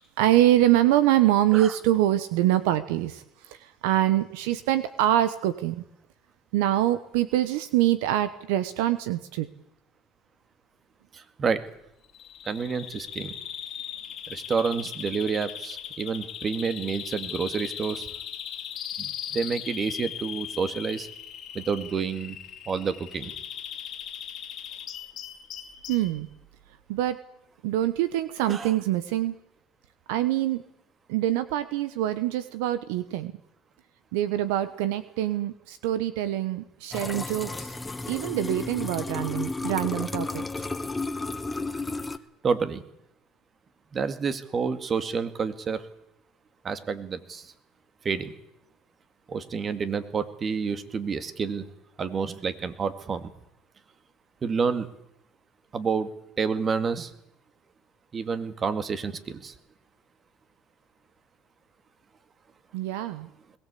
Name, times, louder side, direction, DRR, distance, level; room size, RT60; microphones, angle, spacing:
voice 1, 0.2-5.8 6.5-9.5 25.9-26.3 26.9-27.2 27.6-29.3 30.1-30.6 31.1-33.3 34.1-37.8 38.1-40.4 62.7-63.3, right 13 dB, 80° right, 14 dB, 1.1 m, -25 dB
voice 2, 11.1-11.6 12.5-13.3 14.3-18.1 19.0-21.1 21.5-22.4 22.7-23.3 28.5-28.7 42.4-42.8 43.9-45.9 46.6-47.5 48.0-48.3 49.3-51.6 52.0-53.3 54.4-54.9 55.7-56.1 56.4-57.1 58.1-59.5, right 5 dB, 35° right, 11 dB, 2.2 m, -29 dB
Bird vocalization bird call bird song, 12.1-26.1, left 9 dB, 55° left, 2.4 m, -38 dB
sound 1, 36.9-42.2, left 3 dB, 15° left, 1.3 m, -32 dB
21.5 x 17.5 x 8.5 m, 0.79 s
supercardioid pair, 80°, 0 cm